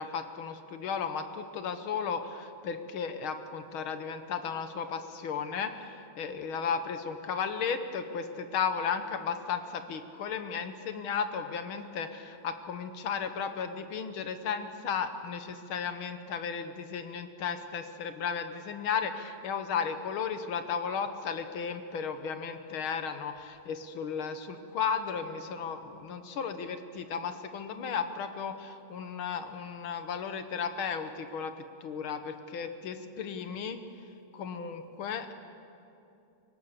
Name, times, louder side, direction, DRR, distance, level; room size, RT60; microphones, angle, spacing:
voice 1, 0.0-31.5 31.8-33.8 34.3-35.3, left 6 dB, 70° left, 9 dB, 1.8 m, -34 dB
24.0 x 18.0 x 6.8 m, 2.7 s
omnidirectional pair, 2.4 m